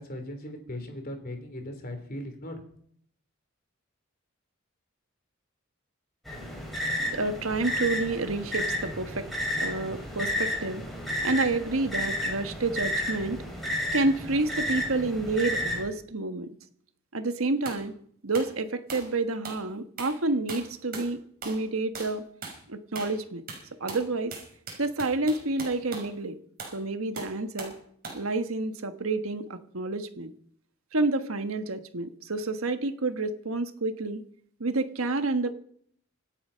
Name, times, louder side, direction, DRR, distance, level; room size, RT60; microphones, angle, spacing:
voice 1, 0.0-2.6, left 1 dB, 45° left, 6 dB, 3.2 m, -38 dB
sound 1, 6.3-15.8, left 1 dB, ahead, 5.5 m, -32 dB
voice 2, 7.1-9.3 9.6-10.8 11.2-13.4 13.9-16.5 17.1-17.9 18.2-21.2 21.4-22.2 22.7-23.4 23.8-24.3 24.8-26.4 26.7-27.7 28.1-30.3 30.9-34.2 34.6-35.5, right 3 dB, 80° right, 9 dB, 1.4 m, -29 dB
sound 2, 17.7-17.8 18.3-18.5 18.9-19.1 19.4-19.6 20.0-20.2 20.5-21.1 21.4-21.7 21.9-22.2 22.4-22.6 23.0-23.2 23.5-26.1 26.6-26.8 27.2-27.8 28.0-28.3, right 4 dB, 45° right, 5.9 m, -40 dB
26.0 x 8.6 x 5.7 m, 0.63 s
head